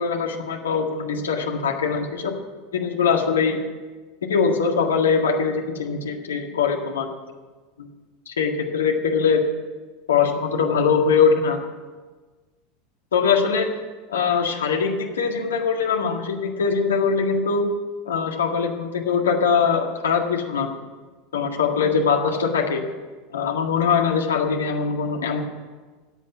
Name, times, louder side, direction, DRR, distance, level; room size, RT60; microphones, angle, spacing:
voice 1, 0.0-2.4 2.7-3.6 4.2-7.1 7.8-7.9 8.3-9.4 10.1-11.6 13.1-13.7 14.1-17.7 18.1-20.7 21.3-22.8 23.3-25.4, left 6 dB, 70° left, 2 dB, 1.8 m, -22 dB
14.5 x 8.4 x 9.7 m, 1.3 s
figure-of-eight pair, 80°, 0 cm